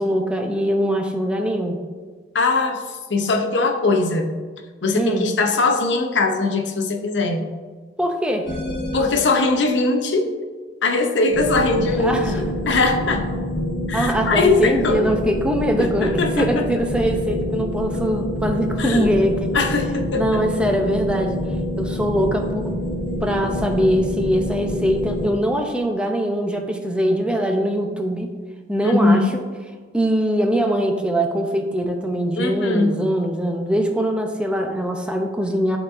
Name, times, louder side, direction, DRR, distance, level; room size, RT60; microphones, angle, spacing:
voice 1, 0.0-1.8 5.0-5.3 8.0-8.6 12.0-12.4 13.9-19.6 20.1-21.4 21.8-22.7 23.2-28.3 28.7-29.4 29.9-35.8, equal, 5° right, 3 dB, 0.5 m, -22 dB
voice 2, 2.3-4.3 4.8-7.5 8.9-10.3 10.8-13.3 13.9-15.1 15.8-16.7 18.8-19.1 19.5-20.5 28.8-29.3 32.4-33.0, left 3 dB, 85° left, 4 dB, 0.7 m, -21 dB
sound 1, 8.5-9.2 11.3-25.3, left 1 dB, 60° left, 1.4 m, -27 dB
11.5 x 3.9 x 2.5 m, 1.4 s
head